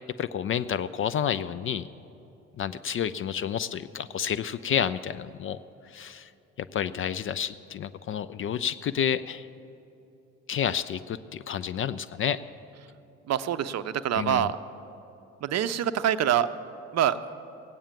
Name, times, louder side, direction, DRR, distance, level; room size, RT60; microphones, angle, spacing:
voice 1, 0.2-1.9 2.6-5.6 5.9-6.3 6.6-9.5 10.5-12.4 14.1-14.5, left 8 dB, 35° left, 14 dB, 0.4 m, -30 dB
voice 2, 13.3-14.6 15.4-16.5 16.9-17.2, right 10 dB, 45° right, 13 dB, 0.7 m, -25 dB
17.0 x 8.8 x 7.0 m, 2.9 s
hypercardioid pair, 50°, 37 cm